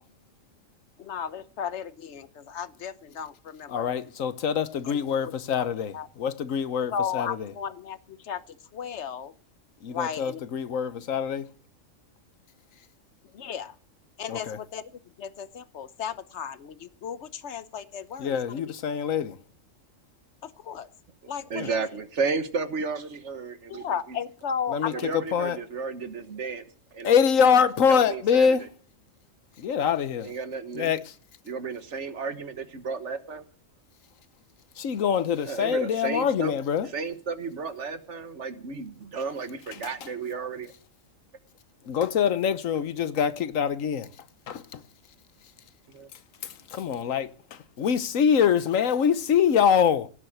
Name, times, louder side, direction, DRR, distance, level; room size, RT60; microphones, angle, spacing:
voice 1, 1.0-3.9 4.9-5.0 5.6-5.7 5.9-6.1 6.9-9.3 9.9-10.4 10.7-10.8 13.3-13.7 14.2-14.8 15.2-18.6 20.4-20.9 21.3-21.7 23.7-25.1, left 7 dB, 60° left, 1.2 m, -35 dB
voice 2, 3.7-7.4 9.8-11.5 14.3-14.6 18.2-19.4 21.6-21.7 24.7-25.6 27.0-28.6 29.6-30.3 30.7-31.1 34.8-36.9 39.8-39.9 41.8-44.1 44.5-44.8 46.8-50.1, left 7 dB, 75° left, 1.3 m, -24 dB
voice 3, 21.5-23.9 24.9-26.6 26.9-27.1 27.9-28.6 30.2-30.9 31.5-33.5 35.4-36.5 36.9-40.7 45.9-46.1, right 4 dB, 60° right, 1.6 m, -33 dB
17.5 x 7.5 x 7.9 m
omnidirectional pair, 1.4 m